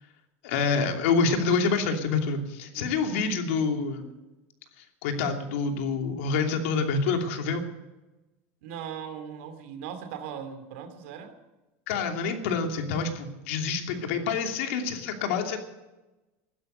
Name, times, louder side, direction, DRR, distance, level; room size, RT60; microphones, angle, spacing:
voice 1, 0.4-4.1 5.0-7.7 11.9-15.6, left 4 dB, 75° left, 4 dB, 2.8 m, -27 dB
voice 2, 8.6-11.4, right 8 dB, 75° right, 9 dB, 2.6 m, -39 dB
16.0 x 12.5 x 6.7 m, 1.0 s
supercardioid pair, 160°, 7 cm